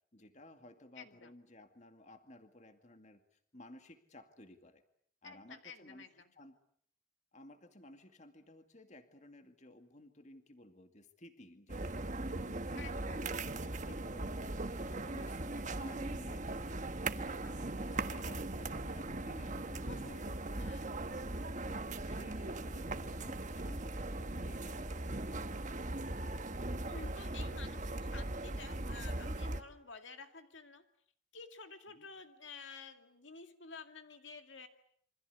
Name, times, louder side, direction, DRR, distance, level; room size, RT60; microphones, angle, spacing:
voice 1, 0.1-4.8 5.2-6.6 7.3-16.7 17.2-21.2 21.7-25.6 32.0-32.1, left 1 dB, 35° left, 7 dB, 2.2 m, -56 dB
voice 2, 1.0-1.3 5.2-6.3 12.8-13.2 17.4-17.5 19.9-20.9 26.2-26.3 26.9-30.8 31.3-34.7, left 4 dB, 60° left, 7 dB, 2.2 m, -51 dB
sound 1, 11.7-29.6, right 2 dB, 35° right, 1.4 m, -39 dB
28.0 x 25.5 x 8.3 m, 0.65 s
head